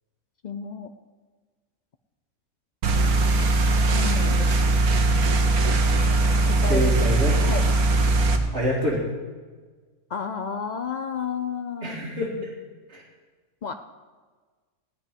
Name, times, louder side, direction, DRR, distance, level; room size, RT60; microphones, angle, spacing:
voice 1, 0.4-0.9 3.7-4.7 6.4-6.9 7.5-7.6 10.1-12.0 13.6-13.7, left 6 dB, 85° left, 8 dB, 0.4 m, -32 dB
sound 1, 2.8-8.4, right 2 dB, 85° right, 1.5 m, -20 dB
voice 2, 6.7-7.4 8.5-9.0 11.8-12.5 12.9-13.0, equal, 50° right, -6 dB, 2.2 m, -26 dB
15.5 x 5.3 x 9.6 m, 1.4 s
omnidirectional pair, 1.5 m